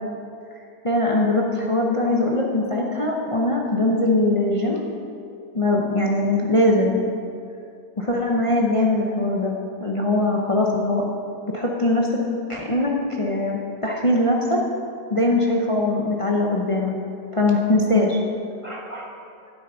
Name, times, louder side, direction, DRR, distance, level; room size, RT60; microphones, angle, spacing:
voice 1, 0.8-4.8 5.5-7.0 8.0-9.5 9.8-11.0 11.5-12.1 12.5-14.6 15.1-16.9 17.3-18.2 18.6-19.1, left 2 dB, 40° left, -1 dB, 0.4 m, -21 dB
10.0 x 9.1 x 3.9 m, 2.6 s
omnidirectional pair, 1.7 m